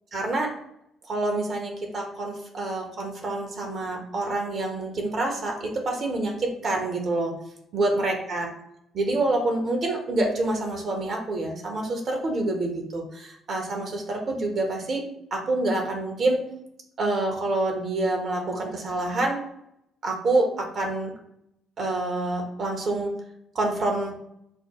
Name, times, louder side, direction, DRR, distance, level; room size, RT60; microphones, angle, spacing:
voice 1, 0.1-0.6 1.1-7.3 7.7-8.5 8.9-15.0 15.3-16.5 17.0-19.4 20.0-21.1 21.8-23.2 23.5-24.2, right 2 dB, 50° right, 1 dB, 1.1 m, -27 dB
5.3 x 2.1 x 3.1 m, 0.77 s
hypercardioid pair, 45°, 0 cm